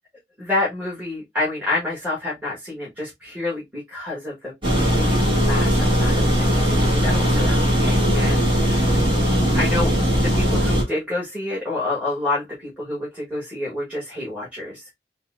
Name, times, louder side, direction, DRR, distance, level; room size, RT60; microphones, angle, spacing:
voice 1, 0.4-4.5 4.9-9.0 9.5-14.9, left 2 dB, 10° right, 1.1 m, -28 dB
sound 1, 4.6-10.8, equal, 30° right, 1.2 m, -19 dB
3.9 x 2.1 x 2.3 m
head